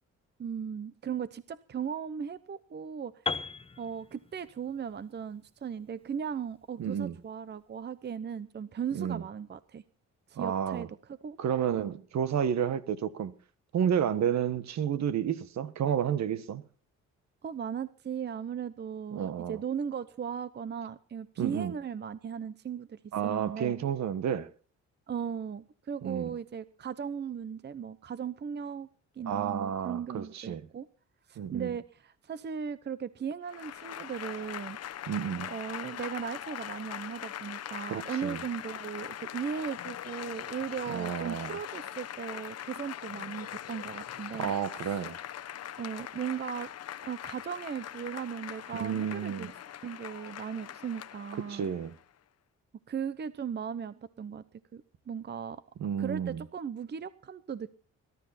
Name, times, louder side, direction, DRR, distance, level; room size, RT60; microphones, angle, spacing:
voice 1, 0.4-3.4 3.8-9.8 10.3-10.9 11.2-11.4 11.8-11.9 17.4-23.8 25.1-28.9 29.2-30.9 31.3-34.8 35.5-44.5 44.8-45.0 45.8-46.7 47.0-49.5 49.8-51.7 52.9-54.4 54.7-55.6 56.0-57.8, right 7 dB, 35° right, 0.8 m, -37 dB
Piano, 3.3-7.2, left 4 dB, 20° left, 1.0 m, -39 dB
voice 2, 6.8-7.1 8.9-9.2 10.4-10.9 11.4-13.3 13.7-16.6 19.1-19.6 21.4-21.7 23.1-24.5 26.0-26.3 29.3-30.6 31.4-31.7 35.1-35.5 37.9-38.4 40.9-41.6 44.4-45.2 48.7-49.5 51.5-51.9 55.8-56.4, right 8 dB, 65° right, 1.4 m, -31 dB
Applause / Crowd, 33.4-52.0, left 10 dB, 55° left, 0.9 m, -41 dB
21.0 x 12.5 x 4.2 m
cardioid pair, 90°, 30 cm